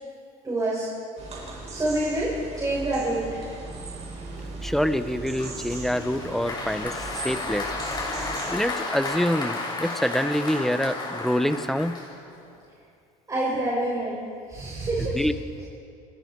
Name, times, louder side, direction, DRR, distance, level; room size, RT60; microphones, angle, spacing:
voice 1, 0.4-0.9 1.7-2.3 2.6-3.4 13.3-14.2 14.5-15.2, right 1 dB, 20° right, -6 dB, 6.9 m, -27 dB
Creaky tree in woodland, 1.2-8.5, right 2 dB, 35° right, 6.4 m, -38 dB
voice 2, 4.6-7.7 8.0-12.0 15.0-15.3, equal, ahead, 10 dB, 1.1 m, -26 dB
Applause, 5.4-12.5, left 3 dB, 25° left, 6.3 m, -33 dB
29.0 x 21.0 x 4.8 m, 2.4 s
cardioid pair, 115°, 18 cm